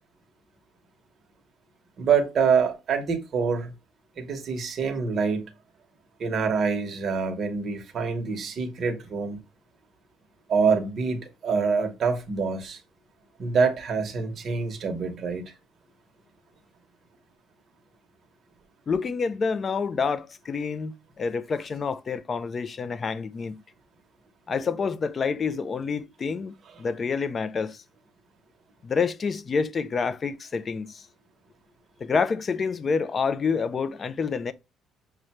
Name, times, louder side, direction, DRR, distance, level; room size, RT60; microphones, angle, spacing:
voice 1, 2.0-3.7 4.2-5.5 6.2-9.4 10.5-12.8 13.4-15.5, right 5 dB, 40° right, 1.0 m, -26 dB
voice 2, 18.9-23.6 24.5-27.8 28.8-31.0 32.0-34.5, left 5 dB, 30° left, 0.4 m, -28 dB
6.3 x 2.2 x 2.9 m
cardioid pair, 155°, 0 cm